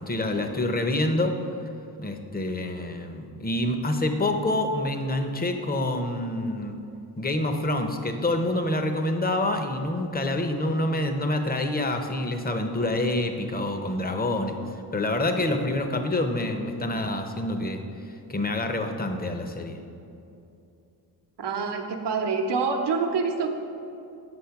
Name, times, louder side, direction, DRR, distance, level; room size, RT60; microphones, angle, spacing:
voice 1, 0.1-1.3 2.0-6.7 7.2-14.6 14.9-17.8 18.3-19.8, left 1 dB, 20° left, 6 dB, 0.8 m, -27 dB
voice 2, 21.4-23.5, right 4 dB, 85° right, 4 dB, 0.9 m, -26 dB
8.0 x 6.4 x 5.8 m, 2.7 s
cardioid pair, 85°, 40 cm